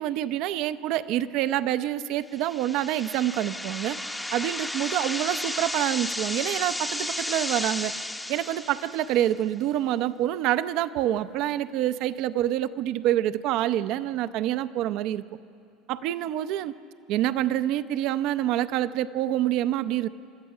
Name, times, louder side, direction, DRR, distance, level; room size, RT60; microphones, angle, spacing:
voice 1, 0.0-4.0 4.3-7.9 8.3-15.2 15.9-16.7 17.1-20.1, right 12 dB, 55° right, 13 dB, 0.6 m, -27 dB
sound 1, 2.3-9.3, left 1 dB, 5° left, 0.8 m, -33 dB
29.5 x 13.5 x 6.7 m, 2.6 s
cardioid pair, 145°, 0 cm